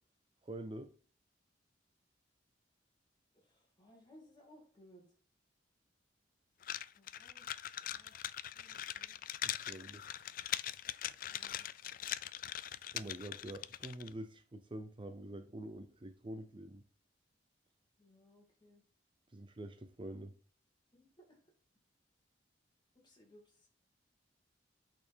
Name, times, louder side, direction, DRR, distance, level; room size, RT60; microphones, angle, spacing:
voice 1, 0.4-0.9 9.4-10.0 12.9-16.8 19.3-20.3, right 1 dB, 30° right, 0.5 m, -46 dB
voice 2, 3.3-5.1 6.7-7.5 7.8-8.2 8.4-9.2 11.3-11.7 18.0-18.8 20.9-21.5 23.0-23.7, equal, 25° left, 2.7 m, -63 dB
sound 1, 6.6-14.1, left 11 dB, 50° left, 0.3 m, -41 dB
8.3 x 4.4 x 4.4 m
head